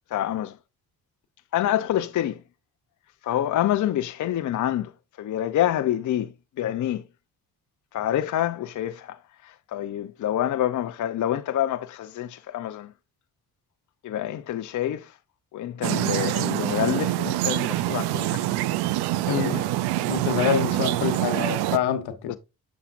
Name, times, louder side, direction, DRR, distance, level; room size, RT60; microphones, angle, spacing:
voice 1, 0.1-0.6 1.5-2.4 3.2-4.9 5.2-7.0 7.9-9.2 9.4-12.9 14.0-15.1 15.5-18.7 19.3-19.6 22.3-22.4, left 12 dB, 50° left, 0.6 m, -27 dB
sound 1, 15.8-21.8, right 15 dB, 90° right, 0.5 m, -25 dB
voice 2, 19.3-19.6 20.1-22.3, left 8 dB, 85° left, 1.1 m, -26 dB
7.1 x 7.0 x 2.5 m
cardioid pair, 75°, 38 cm